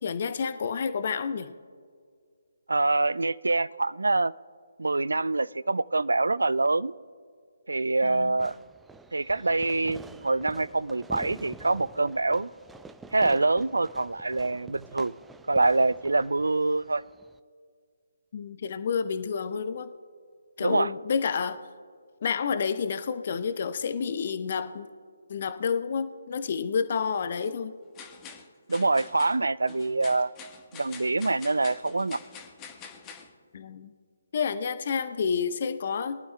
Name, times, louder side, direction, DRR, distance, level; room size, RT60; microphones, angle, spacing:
voice 1, 0.0-1.5 8.0-8.4 18.3-19.9 20.6-21.6 22.2-24.9 25.3-27.7 33.5-33.9 34.3-36.2, left 6 dB, 45° left, 11 dB, 0.7 m, -29 dB
voice 2, 2.7-4.3 4.8-6.9 7.7-8.5 9.1-12.5 13.1-15.2 15.5-17.0 20.6-20.9 28.7-30.3 30.7-32.2, right 3 dB, 75° right, 21 dB, 0.4 m, -25 dB
Fireworks, 8.4-17.4, right 3 dB, 5° right, 0.4 m, -47 dB
sound 1, 27.1-27.5 27.9-33.3, left 6 dB, 20° left, 1.2 m, -46 dB
23.0 x 12.0 x 2.2 m, 2.1 s
figure-of-eight pair, 145°, 0 cm